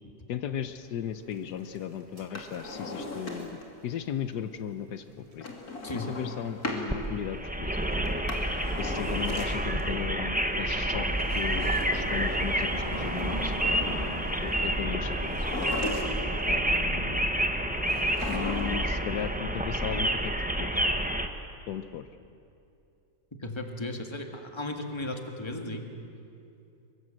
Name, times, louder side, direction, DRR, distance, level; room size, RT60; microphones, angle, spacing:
voice 1, 0.3-5.5 5.9-7.8 8.8-11.1 11.3-15.5 16.5-17.2 18.3-20.3 20.6-20.8 21.7-22.1, left 9 dB, 80° left, 10 dB, 1.4 m, -36 dB
sound 1, 0.8-6.4 6.6-6.8 7.5-15.0, right 1 dB, 20° right, 1.4 m, -44 dB
Drawer open or close, 2.2-3.7 5.4-6.9 8.0-9.8 11.1-12.7 15.2-16.4 17.8-19.0 19.2-19.3, left 2 dB, 60° left, 3.3 m, -37 dB
voice 2, 5.8-6.1 23.4-25.8, left 1 dB, 15° left, 4 dB, 1.8 m, -35 dB
sound 2, 6.9-21.3, right 1 dB, 5° right, 0.9 m, -29 dB
23.5 x 23.0 x 7.8 m, 2.6 s
omnidirectional pair, 1.8 m